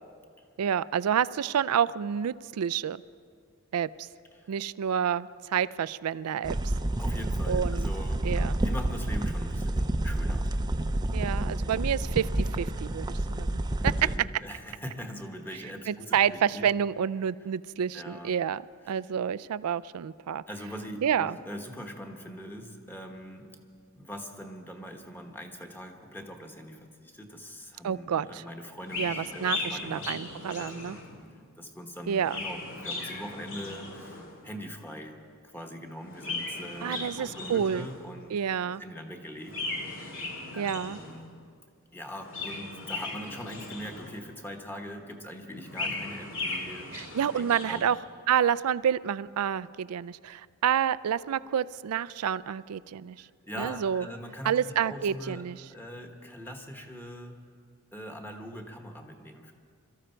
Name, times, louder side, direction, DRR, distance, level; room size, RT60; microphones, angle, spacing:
voice 1, 0.6-3.0 3.7-4.1 4.5-6.7 7.5-7.9 8.2-8.6 11.1-13.9 15.9-18.6 18.9-20.4 21.0-21.4 27.8-28.4 29.0-31.0 32.1-32.4 36.8-37.9 38.3-38.8 40.6-41.0 46.9-48.0 48.3-53.3 53.6-54.1 54.4-55.6, right 8 dB, 75° right, 18 dB, 0.4 m, -29 dB
sound 1, 6.4-14.2, right 1 dB, 20° right, 0.5 m, -29 dB
voice 2, 7.0-10.5 11.6-11.8 13.8-16.7 17.9-18.3 20.5-23.6 23.9-30.1 30.6-30.9 31.6-40.3 40.5-41.2 41.9-46.9 47.3-47.8 53.2-57.4 57.9-59.5, equal, 10° left, 3 dB, 1.3 m, -42 dB
Chirp tweet, 28.8-31.3 32.0-34.4 36.0-38.2 39.4-41.3 42.1-44.4 45.5-48.0, left 3 dB, 65° left, 2.1 m, -37 dB
23.0 x 13.5 x 4.5 m, 2.1 s
head